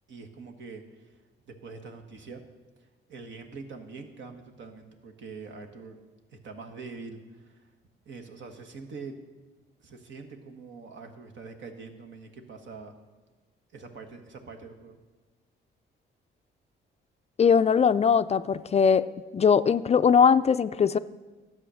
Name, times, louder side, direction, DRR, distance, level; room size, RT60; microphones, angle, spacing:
voice 1, 0.1-1.2 1.5-2.4 3.1-6.0 6.3-7.7 8.0-9.1 9.8-12.9 13.7-15.0, right 4 dB, 70° right, 4 dB, 1.5 m, -44 dB
voice 2, 17.4-19.1 19.3-21.0, left 6 dB, 35° left, 12 dB, 0.3 m, -20 dB
12.0 x 7.8 x 6.3 m, 1.3 s
cardioid pair, 90°, 20 cm